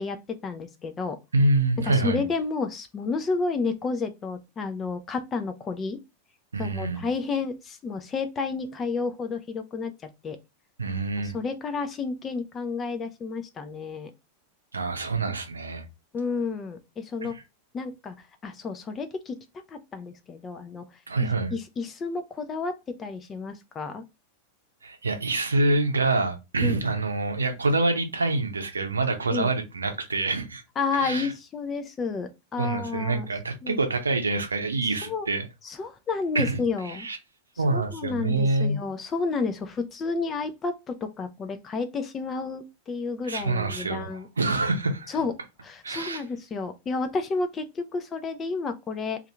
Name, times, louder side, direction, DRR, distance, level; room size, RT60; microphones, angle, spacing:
voice 1, 0.0-1.2 1.8-6.0 6.6-9.9 10.2-10.4 11.2-14.1 16.1-17.3 17.7-18.1 18.4-19.4 19.7-20.8 21.2-24.0 26.6-26.8 29.3-29.5 30.8-33.3 33.6-33.8 35.0-35.3 35.6-37.1 37.7-44.3 45.1-45.3 45.6-49.2, left 4 dB, 25° left, 0.5 m, -31 dB
voice 2, 1.3-2.2 6.5-7.0 10.8-11.3 14.7-15.8 17.2-17.4 21.1-21.5 24.8-30.6 30.9-31.3 32.6-35.5 36.3-36.6 36.9-37.2 37.6-38.8 43.3-45.1 45.8-46.2, right 2 dB, 75° right, 0.6 m, -26 dB
2.7 x 2.5 x 3.2 m
figure-of-eight pair, 90°, 0 cm